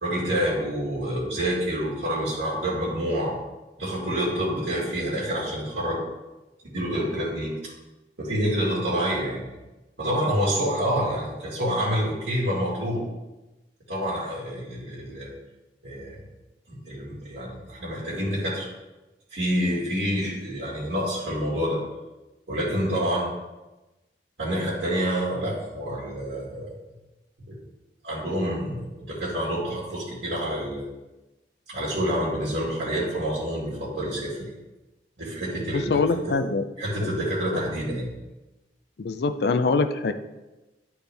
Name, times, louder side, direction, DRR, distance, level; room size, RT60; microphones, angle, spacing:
voice 1, 0.0-3.4 3.8-6.0 6.7-7.7 8.2-9.5 10.0-13.0 13.9-15.3 15.8-16.2 16.7-18.7 19.3-21.8 22.5-23.3 24.4-26.7 27.5-27.6 28.0-30.8 31.7-34.5 35.2-36.4 36.8-38.1, equal, 90° right, -7 dB, 2.0 m, -27 dB
voice 2, 35.7-36.7 37.0-37.1 39.0-40.1, left 4 dB, 70° left, 8 dB, 0.4 m, -24 dB
9.7 x 4.3 x 3.4 m, 1.1 s
head